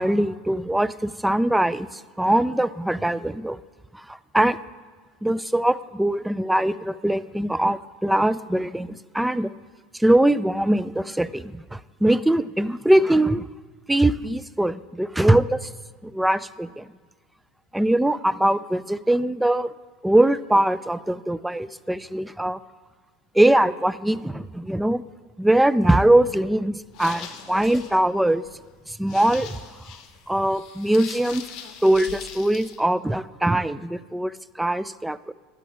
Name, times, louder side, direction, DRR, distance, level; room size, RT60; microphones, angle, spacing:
voice 1, 0.0-3.6 3.9-4.6 5.2-9.5 9.9-13.5 13.9-15.7 16.0-16.9 17.7-19.7 20.0-22.6 23.3-25.0 25.4-28.4 28.9-29.6 30.3-31.4 31.8-35.3, right 1 dB, 5° right, 16 dB, 0.3 m, -22 dB
sound 1, 26.8-32.8, left 8 dB, 55° left, 0.9 m, -41 dB
12.0 x 5.0 x 5.8 m, 1.4 s
hypercardioid pair, 85°, 0 cm